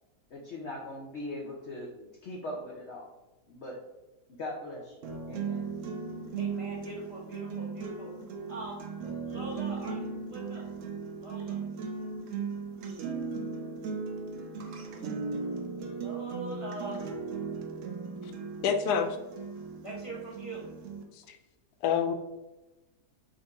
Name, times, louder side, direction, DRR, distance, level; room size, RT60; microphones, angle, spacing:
voice 1, 0.3-3.1 3.5-3.8 4.4-5.6, left 1 dB, 55° left, -3 dB, 0.8 m, -40 dB
sound 1, 5.0-21.0, right 5 dB, 65° right, 0.9 m, -37 dB
voice 2, 6.4-8.1 8.5-10.7 11.1-11.6 15.9-17.0 19.8-20.7, right 1 dB, 35° left, -5 dB, 0.5 m, -42 dB
voice 3, 18.6-19.2 21.1-21.4 21.8-22.1, left 7 dB, 80° left, 7 dB, 1.1 m, -27 dB
3.7 x 2.6 x 4.5 m, 1.0 s
omnidirectional pair, 1.7 m